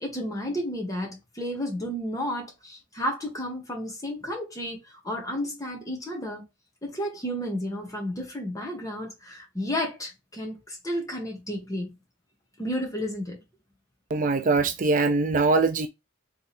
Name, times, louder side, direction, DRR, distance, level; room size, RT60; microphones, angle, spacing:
voice 1, 0.0-6.4 6.8-12.0 12.6-13.4, equal, 15° left, 1.4 m, -32 dB
voice 2, 14.1-15.9, right 3 dB, 40° right, 0.4 m, -22 dB
3.5 x 3.4 x 4.2 m
head